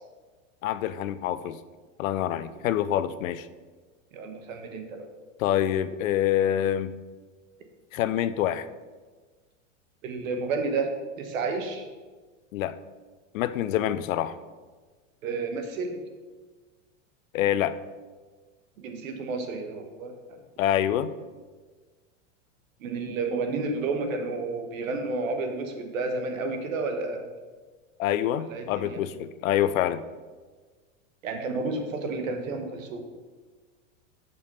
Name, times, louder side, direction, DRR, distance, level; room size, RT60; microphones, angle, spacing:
voice 1, 0.6-1.6 2.0-3.5 5.4-6.9 7.9-8.7 12.5-12.7 13.3-14.3 17.3-17.8 20.6-21.1 28.0-30.0, left 11 dB, 80° left, 14 dB, 0.6 m, -26 dB
voice 2, 4.1-5.1 10.0-11.9 15.2-16.0 18.8-20.1 22.8-27.3 28.4-29.0 31.2-33.0, right 3 dB, 85° right, 6 dB, 1.4 m, -31 dB
6.7 x 5.4 x 5.6 m, 1.4 s
supercardioid pair, 120°, 39 cm